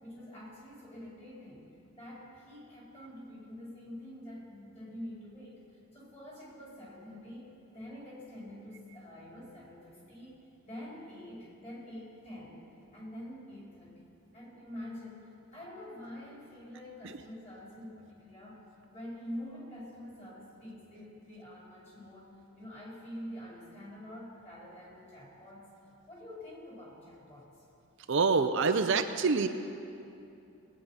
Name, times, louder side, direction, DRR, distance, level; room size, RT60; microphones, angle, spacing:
voice 1, 0.0-14.1 14.3-18.6 18.9-22.3 22.5-25.7 26.1-27.5, left 1 dB, 30° left, -5 dB, 4.1 m, -46 dB
voice 2, 28.1-29.5, right 4 dB, 55° right, 8 dB, 0.5 m, -26 dB
19.5 x 9.1 x 5.6 m, 2.7 s
head